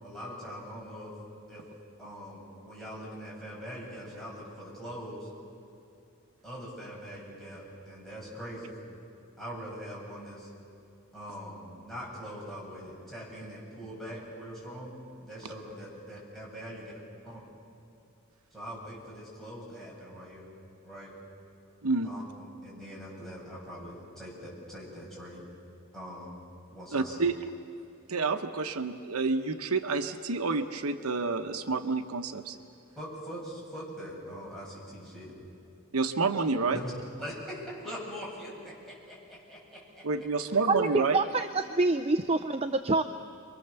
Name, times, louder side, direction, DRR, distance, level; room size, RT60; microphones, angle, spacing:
voice 1, 0.0-1.1 1.5-1.6 2.0-5.3 6.4-8.7 9.4-10.5 11.1-14.9 15.2-16.9 17.2-17.4 18.5-20.5 20.8-21.1 22.0-25.4 25.9-26.3 26.7-27.2 33.0-35.3 36.7-36.9 37.2-40.0, equal, ahead, -6 dB, 8.0 m, -42 dB
voice 2, 26.9-27.4 28.1-32.6 35.9-36.8 40.0-41.2, right 4 dB, 80° right, 7 dB, 1.0 m, -29 dB
voice 3, 40.7-43.0, right 3 dB, 30° right, 8 dB, 0.6 m, -26 dB
28.5 x 23.5 x 7.0 m, 2.7 s
head